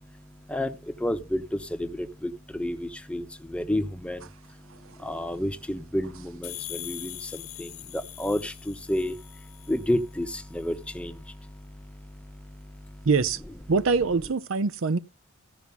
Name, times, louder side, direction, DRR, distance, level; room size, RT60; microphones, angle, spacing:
voice 1, 0.0-13.1, left 1 dB, 5° left, 0.9 m, -32 dB
sound 1, 6.4-10.0, left 15 dB, 65° left, 1.3 m, -41 dB
voice 2, 13.1-13.4 13.7-15.0, right 4 dB, 60° right, 0.6 m, -23 dB
15.0 x 5.9 x 5.3 m
head